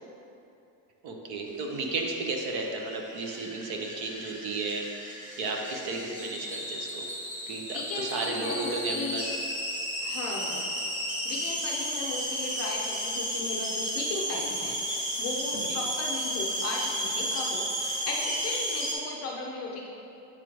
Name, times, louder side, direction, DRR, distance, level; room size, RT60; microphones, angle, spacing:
voice 1, 1.0-7.1 7.5-9.3 15.5-15.8, right 3 dB, 55° right, 1 dB, 0.8 m, -34 dB
sound 1, 1.6-18.9, equal, 15° right, 0.9 m, -33 dB
voice 2, 7.7-9.2 10.0-10.7 11.0-19.9, left 3 dB, 35° left, -1 dB, 0.5 m, -36 dB
7.5 x 3.1 x 5.0 m, 2.8 s
cardioid pair, 160°, 47 cm